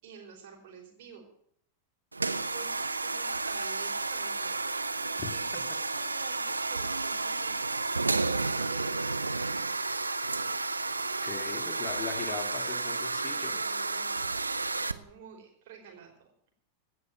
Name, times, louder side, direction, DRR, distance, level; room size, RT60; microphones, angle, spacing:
voice 1, 0.0-1.3 2.2-4.7 5.3-9.6 13.2-16.3, right 7 dB, 50° right, 1 dB, 4.7 m, -50 dB
sound 1, 2.1-14.9, right 3 dB, 80° right, 0.6 m, -32 dB
voice 2, 11.2-13.6, left 6 dB, 25° left, 3 dB, 2.2 m, -39 dB
17.5 x 6.2 x 9.1 m, 0.67 s
figure-of-eight pair, 90°, 0 cm